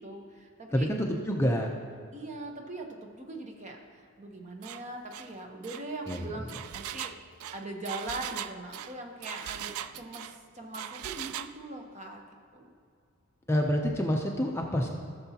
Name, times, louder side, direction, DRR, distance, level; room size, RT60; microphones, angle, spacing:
voice 1, 0.0-0.9 2.1-7.2 7.5-12.2 12.5-12.7, right 2 dB, 30° right, 2 dB, 1.0 m, -41 dB
voice 2, 0.7-1.7 6.1-6.4 13.5-14.9, equal, 10° left, 0 dB, 0.6 m, -27 dB
Engine, 4.6-4.8 5.1-5.3 5.6-10.4 10.7-11.5, right 10 dB, 80° right, 0.3 m, -39 dB
16.0 x 7.0 x 2.9 m, 2.3 s
head